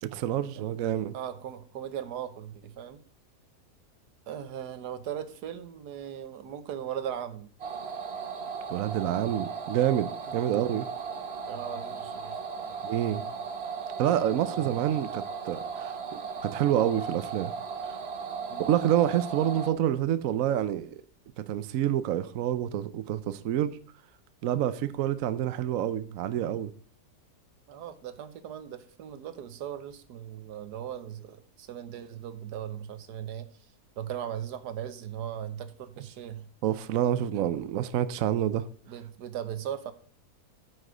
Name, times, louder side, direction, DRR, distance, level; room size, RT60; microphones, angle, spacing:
voice 1, 0.0-1.1 8.7-10.9 12.8-13.2 14.0-17.5 17.8-18.0 18.6-21.0 21.4-23.8 24.4-26.7 36.6-38.7, right 11 dB, 65° right, 0.9 m, -28 dB
voice 2, 1.1-3.0 4.3-7.5 10.3-10.6 11.5-12.8 14.5-14.9 18.5-18.7 24.8-24.9 27.7-33.7 34.0-36.5 37.3-37.5 38.9-39.9, right 9 dB, 85° right, 1.5 m, -38 dB
sound 1, 7.6-19.7, right 5 dB, 45° right, 1.1 m, -36 dB
9.2 x 6.5 x 4.9 m
omnidirectional pair, 1.7 m